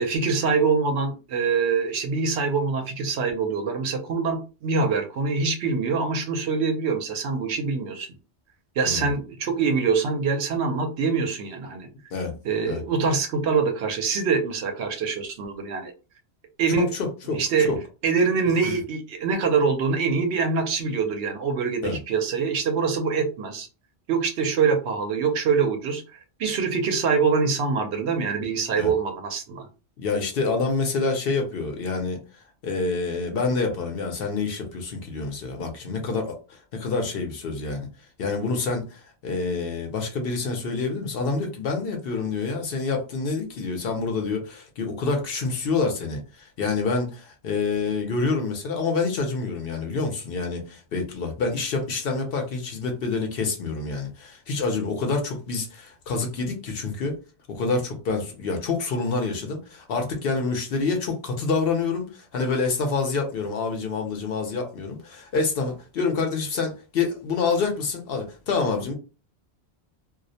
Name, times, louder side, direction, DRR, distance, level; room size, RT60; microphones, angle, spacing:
voice 1, 0.0-8.1 8.8-11.9 12.4-15.9 16.6-16.9 17.4-17.7 18.0-23.7 24.1-29.7, right 5 dB, 80° right, 0.9 m, -24 dB
voice 2, 16.9-17.8 18.6-18.8 21.8-22.0 28.8-28.9 30.0-32.2 32.6-37.9 38.2-57.2 57.5-68.9, left 4 dB, 65° left, 0.8 m, -27 dB
2.3 x 2.0 x 2.6 m
omnidirectional pair, 1.1 m